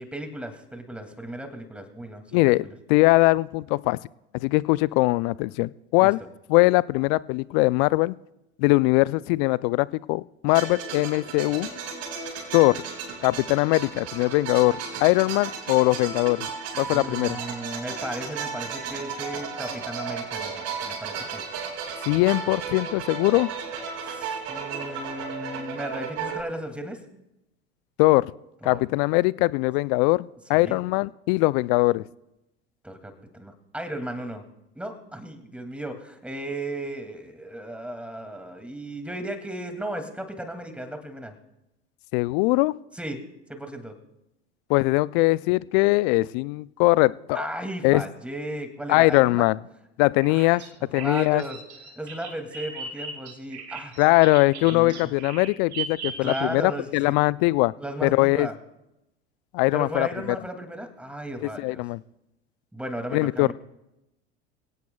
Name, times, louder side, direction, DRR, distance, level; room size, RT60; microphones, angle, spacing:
voice 1, 0.0-2.7 6.0-6.1 16.9-21.4 24.0-27.0 28.6-28.8 30.5-30.8 32.8-34.4 34.8-41.3 42.9-43.2 43.5-44.0 47.3-49.5 50.3-50.6 50.9-51.6 52.0-53.9 54.7-55.1 56.2-57.2 57.8-58.5 59.7-61.8 62.7-63.5, right 1 dB, 5° right, 6 dB, 2.4 m, -35 dB
voice 2, 2.3-4.0 4.4-6.2 6.5-8.1 8.6-11.7 12.5-12.8 13.2-16.5 16.8-17.4 22.1-23.5 28.0-28.3 28.6-32.0 42.1-42.7 44.7-47.5 47.8-48.0 48.9-49.6 50.0-50.6 50.9-51.4 54.0-57.7 58.0-58.5 59.5-60.1 61.6-62.0 63.1-63.5, left 23 dB, 50° left, 21 dB, 0.5 m, -21 dB
sound 1, 10.5-26.4, right 6 dB, 50° right, 4.9 m, -34 dB
Bird vocalization bird call bird song, 50.2-56.8, right 5 dB, 80° right, 2.3 m, -37 dB
27.0 x 17.5 x 2.3 m, 0.90 s
hypercardioid pair, 80°, 33 cm